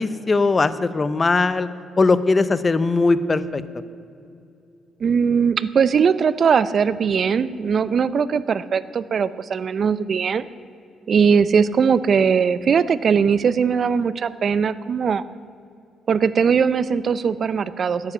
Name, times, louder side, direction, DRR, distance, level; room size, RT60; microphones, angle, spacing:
voice 1, 0.0-1.7 2.0-3.6, left 3 dB, 30° left, 14 dB, 0.7 m, -19 dB
voice 2, 5.0-10.5 11.1-15.2 16.1-18.1, right 6 dB, 50° right, 16 dB, 0.5 m, -20 dB
11.0 x 9.8 x 8.5 m, 2.5 s
cardioid pair, 90°, 0 cm